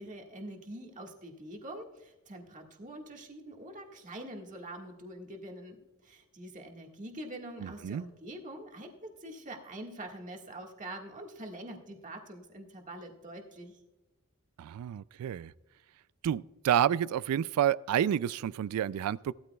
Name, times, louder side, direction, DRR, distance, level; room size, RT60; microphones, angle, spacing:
voice 1, 0.0-13.8, right 1 dB, 35° right, 1 dB, 1.7 m, -45 dB
voice 2, 7.6-8.0 14.6-15.5 16.2-19.3, right 10 dB, 80° right, 18 dB, 0.3 m, -29 dB
17.5 x 13.0 x 2.3 m, 1.0 s
head